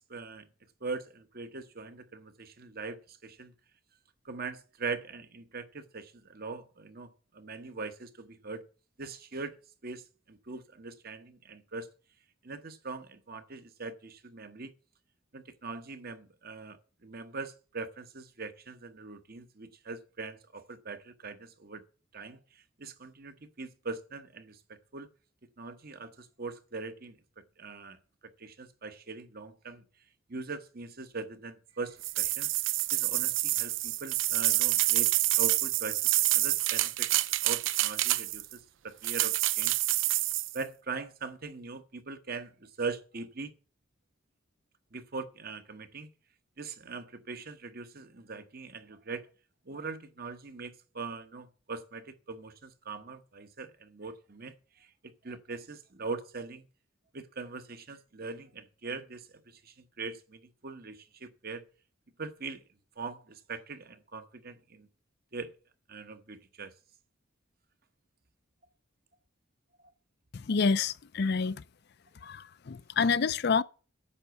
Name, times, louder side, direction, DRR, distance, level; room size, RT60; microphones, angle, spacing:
voice 1, 0.1-0.5 0.8-3.5 4.2-8.6 9.0-9.5 9.8-11.9 12.4-14.7 15.3-21.8 22.1-25.1 25.6-28.0 28.4-29.8 30.3-32.5 32.9-37.1 37.4-39.8 40.5-43.5 44.9-46.1 46.6-49.3 49.7-54.9 55.2-56.7 57.1-61.6 62.2-62.6 63.0-64.9 65.3-65.5 65.9-66.7, right 4 dB, 45° right, 1.1 m, -41 dB
sound 1, 32.0-38.5 39.0-40.6, right 16 dB, 65° right, 0.5 m, -27 dB
voice 2, 70.3-71.6 72.2-73.6, left 5 dB, 50° left, 0.5 m, -28 dB
9.8 x 6.8 x 8.1 m
head